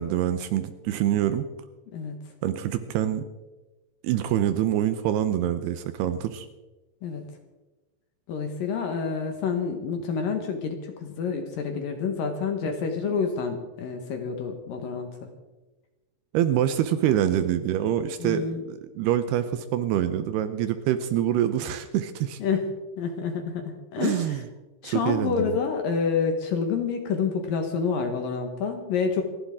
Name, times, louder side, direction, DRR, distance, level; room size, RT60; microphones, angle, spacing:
voice 1, 0.0-1.4 2.4-3.3 4.0-6.5 16.3-22.4 24.0-24.4 24.8-25.6, right 11 dB, 80° right, 10 dB, 2.6 m, -25 dB
voice 2, 8.3-15.3 18.2-18.6 22.4-22.7 23.0-24.4 24.8-29.2, left 5 dB, 65° left, 5 dB, 2.5 m, -28 dB
28.0 x 11.5 x 3.7 m, 1.2 s
omnidirectional pair, 5.1 m